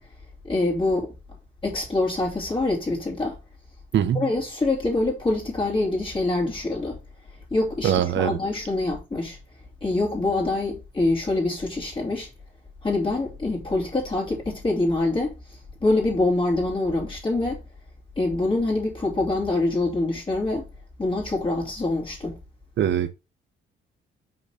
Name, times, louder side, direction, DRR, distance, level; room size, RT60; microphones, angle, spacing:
voice 1, 0.4-1.1 1.6-3.4 4.1-7.0 7.5-9.4 9.8-12.3 12.8-15.3 15.8-17.6 18.2-20.7 21.0-22.4, left 2 dB, 25° left, 3.1 m, -25 dB
voice 2, 3.9-4.2 7.8-8.4 22.8-23.1, right 9 dB, 70° right, 1.2 m, -22 dB
6.1 x 4.1 x 5.8 m
cardioid pair, 90°, 20 cm